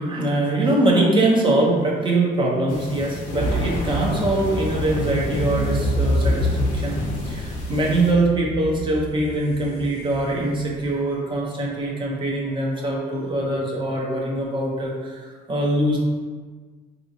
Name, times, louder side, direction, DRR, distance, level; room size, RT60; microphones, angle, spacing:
voice 1, 0.0-7.0 7.2-16.0, right 1 dB, 30° right, -3 dB, 0.7 m, -23 dB
sound 1, 2.7-8.1, left 2 dB, 50° left, 0.9 m, -31 dB
sound 2, 3.4-10.9, equal, 45° right, 1.3 m, -27 dB
3.6 x 2.8 x 2.6 m, 1.5 s
cardioid pair, 110°, 17 cm